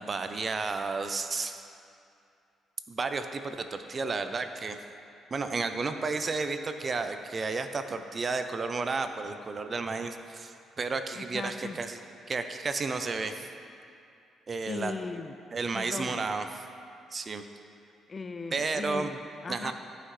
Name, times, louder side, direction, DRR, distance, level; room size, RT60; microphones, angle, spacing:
voice 1, 0.0-1.6 2.9-4.8 5.3-12.0 12.3-13.5 14.5-14.9 15.5-16.5 17.1-17.4 18.5-19.1 19.5-19.7, right 4 dB, 40° right, 8 dB, 0.6 m, -32 dB
voice 2, 11.1-11.8 14.7-15.4 15.7-16.2 18.1-19.7, left 4 dB, 35° left, 10 dB, 0.4 m, -38 dB
14.0 x 5.8 x 3.2 m, 2.5 s
cardioid pair, 90°, 0 cm